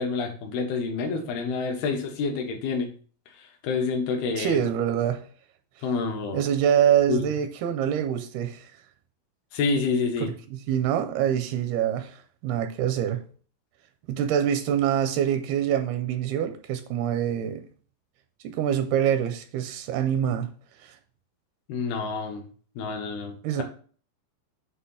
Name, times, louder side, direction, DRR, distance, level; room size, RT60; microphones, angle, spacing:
voice 1, 0.0-2.9 3.4-4.6 5.8-6.5 7.1-7.2 9.5-10.3 21.7-22.4 22.8-23.6, left 4 dB, 75° left, 3.1 m, -28 dB
voice 2, 4.4-5.2 6.3-8.6 10.2-13.2 14.1-17.7 18.4-20.5 20.8-21.0 23.4-23.6, right 9 dB, 85° right, 2.5 m, -25 dB
8.2 x 2.8 x 5.6 m
omnidirectional pair, 4.6 m